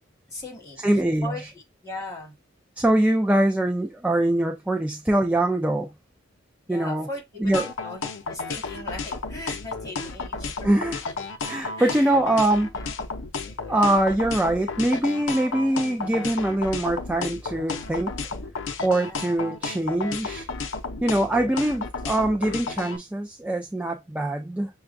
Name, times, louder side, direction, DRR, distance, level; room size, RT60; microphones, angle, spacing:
voice 1, 0.3-0.8 1.2-2.3 6.7-7.5 7.8-10.7 11.0-11.1 11.7-12.2 13.4-14.1 19.0-19.3, left 2 dB, 15° left, 1.5 m, -38 dB
voice 2, 0.8-1.3 2.8-5.9 6.7-7.1 7.4-7.7 10.6-11.0 11.5-12.7 13.7-18.1 18.8-20.5 21.0-24.7, right 1 dB, 5° right, 0.4 m, -23 dB
sound 1, 7.5-23.0, left 4 dB, 75° left, 0.6 m, -32 dB
6.6 x 2.3 x 2.5 m
head